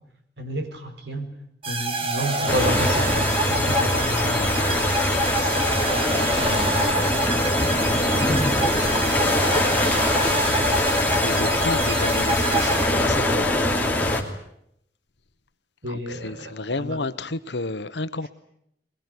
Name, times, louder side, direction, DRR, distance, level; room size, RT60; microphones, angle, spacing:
voice 1, 0.4-1.3 1.7-4.5 6.3-7.4 15.8-17.0, equal, 85° right, 4.7 m, -31 dB
sound 1, 1.6-13.5, right 2 dB, 30° right, 2.1 m, -27 dB
voice 2, 2.3-2.9 4.3-5.2 11.2-13.5 15.9-18.3, left 2 dB, 85° left, 1.1 m, -31 dB
sound 2, 2.5-14.2, left 1 dB, 10° left, 2.7 m, -22 dB
23.0 x 20.5 x 9.8 m
head